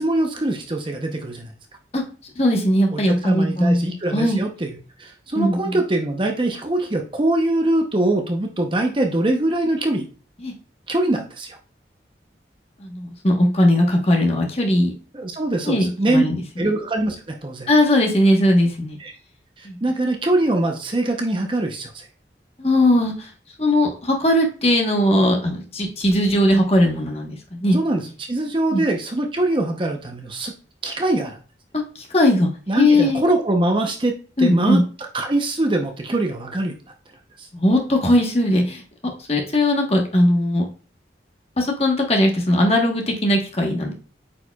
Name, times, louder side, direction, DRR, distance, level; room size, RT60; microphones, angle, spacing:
voice 1, 0.0-1.5 2.9-10.1 10.9-11.6 15.1-16.2 16.6-17.7 19.0-19.1 19.6-22.1 27.7-30.5 30.8-31.4 32.7-34.8 35.1-36.7 37.4-37.5, right 1 dB, 30° right, 3 dB, 0.7 m, -23 dB
voice 2, 2.4-4.4 5.4-5.8 10.4-10.5 12.8-14.9 15.7-16.7 17.7-19.0 19.6-19.8 22.6-23.3 23.6-27.8 28.7-28.8 31.7-31.8 32.1-32.5 32.7-33.2 34.4-34.8 37.5-38.8 39.3-40.7 41.6-43.9, left 1 dB, 35° left, 2 dB, 1.1 m, -19 dB
8.4 x 4.8 x 2.3 m, 0.38 s
head